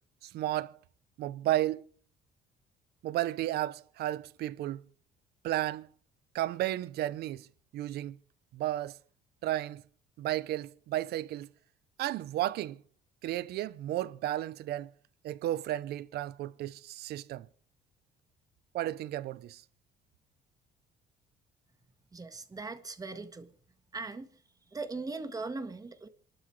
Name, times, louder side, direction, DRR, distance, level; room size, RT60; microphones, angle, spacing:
voice 1, 0.2-0.8 1.2-1.8 3.0-4.8 5.4-5.9 6.3-7.5 7.7-8.2 8.5-9.0 9.4-9.8 10.2-11.5 12.0-12.8 13.2-14.9 15.2-17.5 18.7-19.6, right 14 dB, 70° right, 0.7 m, -33 dB
voice 2, 22.1-23.5 23.9-24.3 24.7-26.1, right 3 dB, 20° right, 1.5 m, -39 dB
27.5 x 12.0 x 3.3 m
cardioid pair, 110°, 17 cm